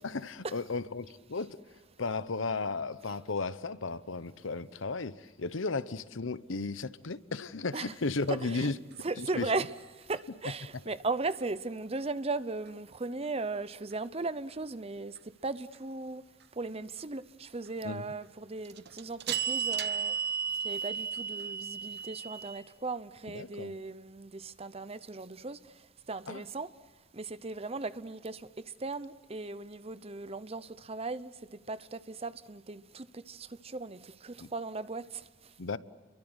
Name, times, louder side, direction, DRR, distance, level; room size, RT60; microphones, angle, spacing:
voice 1, 0.0-1.6 2.0-8.8 9.2-9.5 17.8-18.0 23.3-23.7 26.3-26.4 34.4-34.5 35.6-35.8, left 3 dB, 80° left, 0.9 m, -34 dB
voice 2, 8.3-8.7 9.0-16.2 16.5-20.2 20.6-26.7 27.1-35.5, right 3 dB, 30° right, 0.8 m, -37 dB
sound 1, 8.3-8.4 18.7-22.6, right 7 dB, 60° right, 1.0 m, -34 dB
30.0 x 23.0 x 8.0 m
head